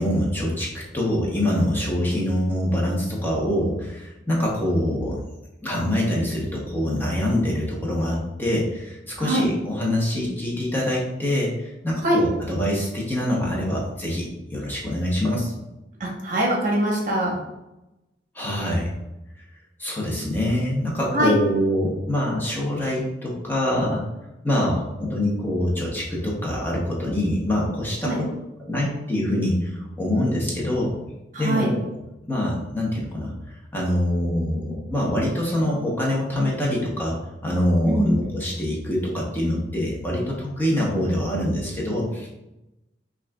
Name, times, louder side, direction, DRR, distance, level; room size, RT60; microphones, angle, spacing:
voice 1, 0.0-5.2 5.6-15.5 18.3-18.9 19.8-24.0 24.4-28.3 28.6-30.9 31.4-31.8 32.3-37.2 37.4-42.3, left 1 dB, 10° left, -4 dB, 0.7 m, -25 dB
voice 2, 9.2-9.5 12.0-12.2 16.0-17.4 21.1-21.3 28.0-28.2 31.3-31.7 37.8-38.2, right 1 dB, 50° right, -2 dB, 1.0 m, -22 dB
5.9 x 2.4 x 2.3 m, 0.95 s
head